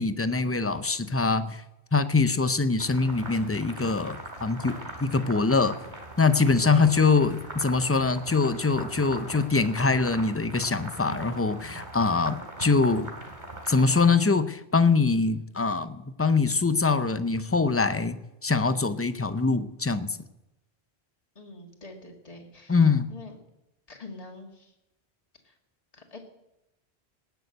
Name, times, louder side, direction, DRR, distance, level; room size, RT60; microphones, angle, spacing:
voice 1, 0.0-1.6 1.9-5.8 6.2-13.1 13.7-20.2 22.7-23.1, left 4 dB, 20° left, 12 dB, 0.5 m, -24 dB
sound 1, 2.8-14.1, right 1 dB, 45° right, 3.1 m, -41 dB
voice 2, 6.6-7.0 21.4-23.4 23.9-24.7 25.4-25.5 25.9-26.2, left 2 dB, 35° left, 2 dB, 2.0 m, -45 dB
19.0 x 6.9 x 7.9 m, 0.92 s
omnidirectional pair, 1.1 m